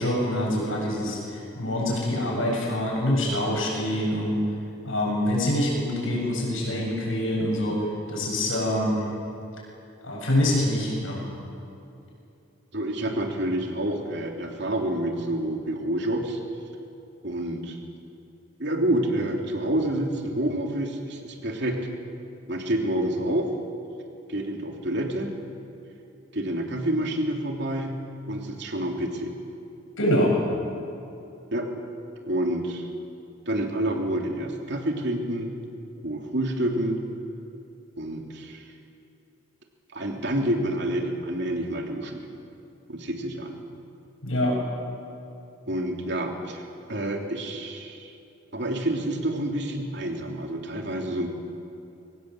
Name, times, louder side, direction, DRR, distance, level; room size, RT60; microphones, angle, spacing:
voice 1, 0.0-4.4 4.8-9.0 10.0-11.2 30.0-30.3 44.2-44.6, left 1 dB, 80° left, -2 dB, 7.8 m, -25 dB
voice 2, 12.7-16.4 17.2-17.8 18.6-21.8 22.5-23.5 24.3-25.3 26.3-28.0 28.3-29.4 31.5-31.7 32.3-32.9 33.5-35.5 36.0-37.0 38.0-38.6 39.9-42.2 42.9-43.6 45.7-46.6 46.9-48.1 48.5-51.3, right 1 dB, 60° right, 1 dB, 3.3 m, -28 dB
24.0 x 19.0 x 8.0 m, 2.8 s
head